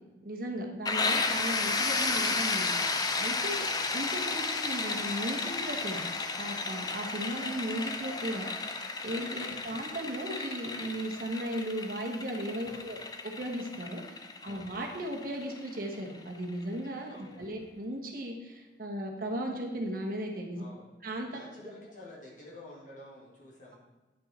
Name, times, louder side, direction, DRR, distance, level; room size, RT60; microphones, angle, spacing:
voice 1, 0.2-2.7 3.2-6.0 6.4-20.6 21.0-21.4, right 1 dB, 55° right, 1 dB, 1.2 m, -36 dB
sound 1, 0.9-16.4, left 3 dB, 20° left, 0.5 m, -33 dB
voice 2, 9.3-9.7 12.6-13.0 14.4-14.7 17.1-17.5 20.5-20.9 21.3-23.8, left 2 dB, 45° left, -5 dB, 2.1 m, -50 dB
9.6 x 5.5 x 4.2 m, 1.2 s
head